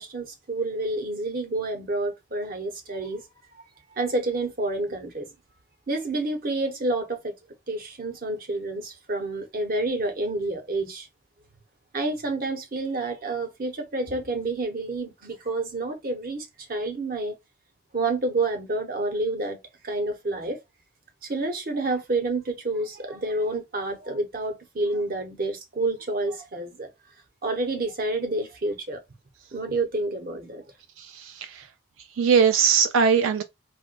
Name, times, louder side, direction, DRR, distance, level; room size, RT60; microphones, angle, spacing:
voice 1, 0.0-3.2 3.9-5.3 5.9-7.3 7.7-11.1 11.9-17.3 17.9-19.6 19.8-20.6 21.2-26.9 27.4-29.0 29.5-30.7, right 2 dB, 45° right, 0.8 m, -29 dB
voice 2, 31.0-31.7 32.2-33.4, right 6 dB, 85° right, 0.4 m, -21 dB
4.2 x 2.2 x 2.4 m
head